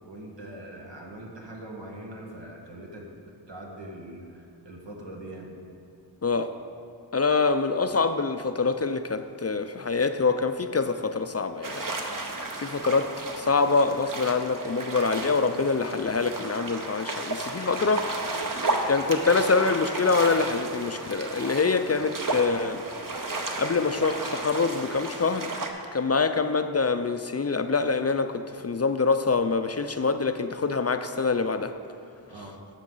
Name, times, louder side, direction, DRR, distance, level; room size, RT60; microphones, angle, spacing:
voice 1, 0.0-3.1 3.5-5.5 32.3-32.6, right 1 dB, 80° right, -2 dB, 1.5 m, -42 dB
voice 2, 7.1-11.9 12.6-13.1 13.4-18.0 18.9-22.8 23.6-25.5 25.9-31.7, left 4 dB, 35° left, 9 dB, 0.4 m, -25 dB
sound 1, 11.6-25.7, right 2 dB, 50° right, 0.9 m, -33 dB
11.5 x 6.6 x 3.9 m, 2.7 s
wide cardioid pair, 40°, 43 cm